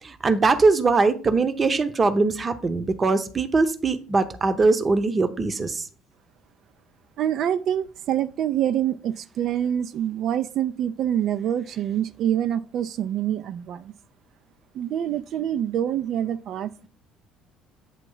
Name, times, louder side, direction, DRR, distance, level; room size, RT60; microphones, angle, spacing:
voice 1, 0.0-5.9, right 3 dB, 30° right, 0.7 m, -21 dB
voice 2, 7.2-13.9 14.7-16.9, right 10 dB, 50° right, 0.3 m, -26 dB
8.5 x 3.0 x 5.4 m
figure-of-eight pair, 55°, 0 cm